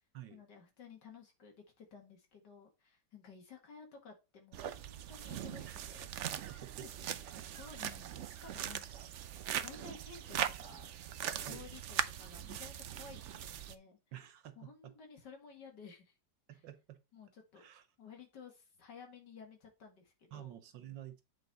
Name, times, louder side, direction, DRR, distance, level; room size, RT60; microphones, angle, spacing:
voice 1, 0.3-6.1 6.5-9.1 9.6-10.9 11.3-14.0 14.6-16.1 16.5-16.6 17.1-17.7 18.0-20.6, left 5 dB, 70° left, 2.5 m, -55 dB
sound 1, 4.5-13.8, right 10 dB, 75° right, 0.6 m, -40 dB
voice 2, 6.5-7.5 11.4-11.7 14.1-14.6 14.8-14.9 16.5-17.0 17.6-17.8 20.3-21.2, right 11 dB, 90° right, 1.7 m, -50 dB
8.5 x 4.4 x 4.1 m
omnidirectional pair, 1.9 m